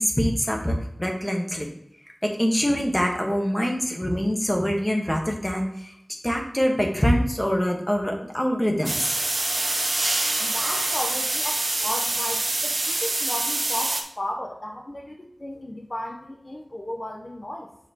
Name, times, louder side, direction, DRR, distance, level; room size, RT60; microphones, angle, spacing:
voice 1, 0.0-1.7 2.2-5.9 6.2-9.2, equal, 10° left, 1 dB, 1.4 m, -24 dB
sound 1, 8.8-14.0, right 2 dB, 75° right, 0.8 m, -25 dB
voice 2, 10.4-17.7, left 1 dB, 45° left, 1 dB, 0.9 m, -34 dB
6.9 x 5.9 x 2.9 m, 0.76 s
wide cardioid pair, 65°, 0 cm